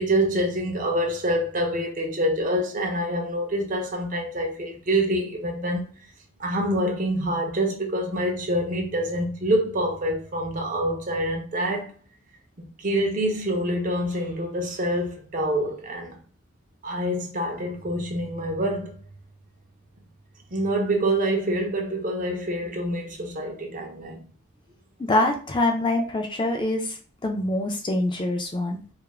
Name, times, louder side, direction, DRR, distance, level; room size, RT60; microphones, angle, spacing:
voice 1, 0.0-5.9 6.4-11.9 12.6-16.2 16.8-18.9 20.5-24.2, right 1 dB, 35° right, 0.5 m, -26 dB
voice 2, 25.0-27.0 27.2-28.8, left 2 dB, 20° left, 0.3 m, -24 dB
2.3 x 2.0 x 3.0 m
head